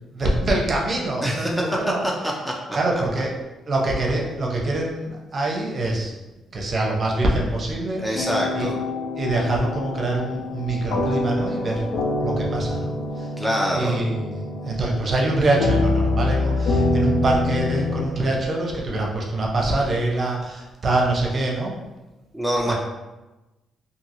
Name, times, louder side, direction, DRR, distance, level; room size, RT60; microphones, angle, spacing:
voice 1, 0.1-2.0 2.7-3.3 3.7-6.1 6.5-8.3 8.5-8.7 9.2-11.8 12.2-13.3 13.8-21.7 22.7-22.8, right 2 dB, 40° right, -1 dB, 0.6 m, -24 dB
voice 2, 1.2-1.6 2.0-2.5 2.9-3.0 8.0-8.8 13.4-14.0 22.3-22.7, equal, ahead, -1 dB, 0.4 m, -25 dB
sound 1, 8.1-18.1, left 2 dB, 75° left, 0.3 m, -25 dB
2.7 x 2.7 x 2.6 m, 1.1 s
cardioid pair, 90°, 0 cm